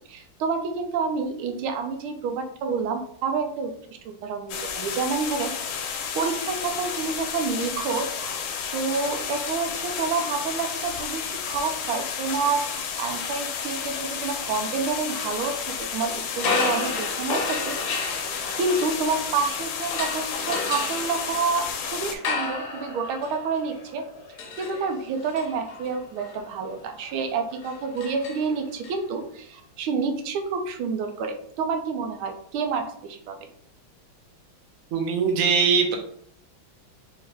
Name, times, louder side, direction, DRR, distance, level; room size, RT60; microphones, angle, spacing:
voice 1, 0.1-3.7 4.0-5.5 5.9-18.3 18.6-24.1 24.6-33.5, right 4 dB, 85° right, 6 dB, 1.5 m, -29 dB
sound 1, 4.5-22.2, left 7 dB, 80° left, 1.4 m, -32 dB
sound 2, 16.3-19.4 19.9-28.9, left 3 dB, 60° left, 1.0 m, -32 dB
voice 2, 34.9-36.0, right 5 dB, 65° right, 2 dB, 0.9 m, -21 dB
4.3 x 2.7 x 3.3 m, 0.63 s
omnidirectional pair, 2.3 m